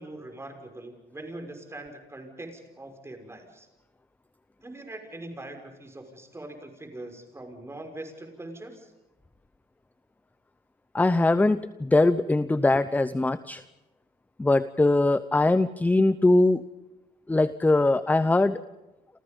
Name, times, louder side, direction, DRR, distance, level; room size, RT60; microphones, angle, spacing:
voice 1, 0.0-3.7 4.6-8.9, right 1 dB, 15° right, 5 dB, 5.9 m, -42 dB
voice 2, 10.9-13.6 14.4-16.6 17.3-18.6, left 2 dB, 10° left, 14 dB, 0.8 m, -22 dB
29.5 x 28.0 x 5.4 m, 1.0 s
cardioid pair, 110°, 17 cm